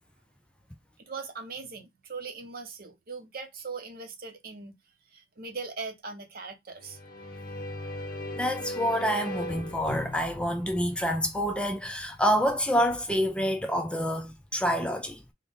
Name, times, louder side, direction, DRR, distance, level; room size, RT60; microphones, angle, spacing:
voice 1, 1.0-4.7 5.1-7.0, right 4 dB, 55° right, 0.8 m, -40 dB
sound 1, 6.8-11.6, left 1 dB, 55° left, 0.6 m, -38 dB
voice 2, 8.3-15.2, equal, 5° left, 0.4 m, -27 dB
3.9 x 2.1 x 3.5 m
head